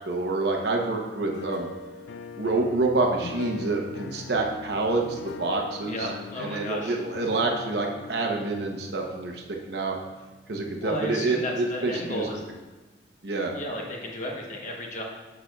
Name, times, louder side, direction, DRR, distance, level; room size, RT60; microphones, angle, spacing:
voice 1, 0.1-1.7 2.4-6.1 6.4-10.0 10.5-12.3 13.2-13.5, right 3 dB, 60° right, 1 dB, 0.8 m, -27 dB
sound 1, 0.6-10.5, left 4 dB, 70° left, 0.3 m, -41 dB
voice 2, 5.8-7.0 10.8-12.4 13.5-15.0, left 1 dB, 40° left, 0 dB, 1.0 m, -33 dB
8.3 x 6.6 x 2.3 m, 1.2 s
head